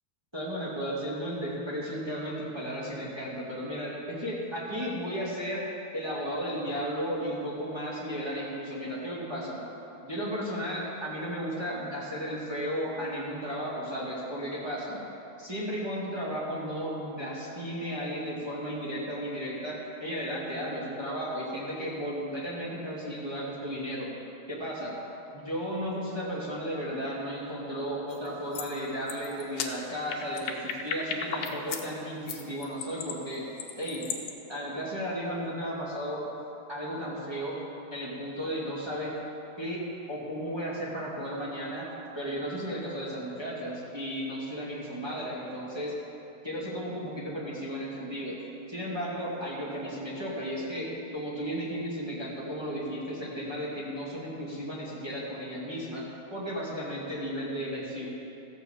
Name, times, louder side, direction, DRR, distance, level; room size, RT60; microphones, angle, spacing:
voice 1, 0.3-5.7 5.9-9.6 10.0-15.0 15.4-24.1 24.5-25.0 25.3-33.4 33.8-34.1 34.5-36.3 36.7-37.6 37.9-39.1 39.6-39.8 40.1-41.9 42.1-45.9 46.4-48.4 48.7-56.0 56.3-58.1, equal, 10° right, -7 dB, 1.8 m, -34 dB
sound 1, 28.1-28.3 28.5-28.7 29.1-31.9 32.3-34.3, left 7 dB, 80° left, 2.5 m, -35 dB
14.5 x 7.1 x 7.4 m, 2.8 s
omnidirectional pair, 4.1 m